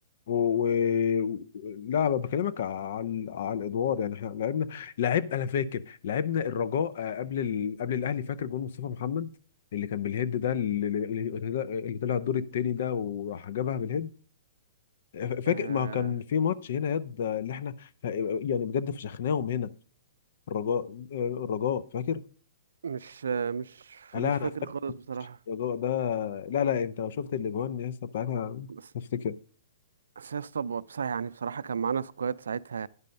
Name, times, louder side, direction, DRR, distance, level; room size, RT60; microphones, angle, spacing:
voice 1, 0.3-9.3 9.7-14.1 15.1-19.7 20.5-22.2 24.1-24.5 25.5-28.7 28.9-29.3, left 8 dB, 60° left, 0.5 m, -29 dB
voice 2, 15.5-16.1 22.8-25.4 28.7-28.8 30.2-32.9, right 6 dB, 90° right, 0.4 m, -34 dB
9.7 x 5.4 x 5.2 m
hypercardioid pair, 145°, 0 cm